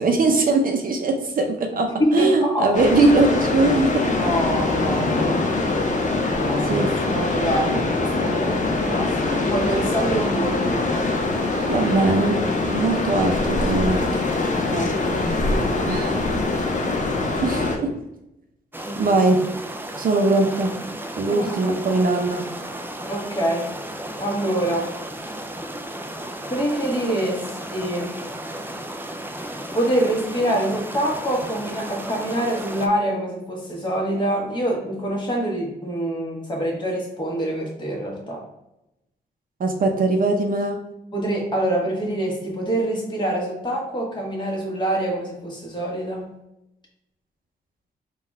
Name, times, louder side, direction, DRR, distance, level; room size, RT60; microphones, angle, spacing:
voice 1, 0.0-4.0 6.6-7.2 11.7-12.4 12.7-14.2 15.8-16.1 17.4-17.9 19.0-19.4 20.0-20.7 21.2-22.5 39.6-40.8, right 3 dB, 55° right, 2 dB, 0.7 m, -21 dB
voice 2, 2.0-2.7 4.2-5.4 6.3-6.9 7.1-11.1 14.6-14.9 15.5-15.9 18.8-19.0 21.4-21.8 23.1-23.7 24.2-24.9 25.2-25.4 26.5-28.2 29.7-38.4 41.1-46.3, right 1 dB, 25° left, -2 dB, 1.4 m, -25 dB
Summer Beach Storm, 2.7-17.8, left 3 dB, 50° left, 0.7 m, -23 dB
sound 1, 18.7-32.9, right 1 dB, 10° right, 0.4 m, -34 dB
3.9 x 2.4 x 4.2 m, 0.87 s
cardioid pair, 85°, 17 cm